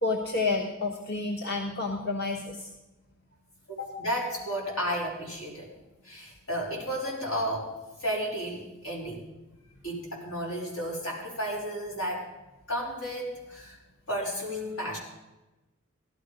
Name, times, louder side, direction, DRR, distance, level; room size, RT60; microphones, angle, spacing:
voice 1, 0.0-2.7, left 3 dB, 50° left, 1 dB, 1.2 m, -29 dB
voice 2, 3.7-5.7 6.0-7.7 8.0-9.2 9.8-12.3 12.7-13.8 14.1-15.0, equal, 80° left, -3 dB, 5.0 m, -33 dB
16.0 x 12.5 x 5.2 m, 1.1 s
head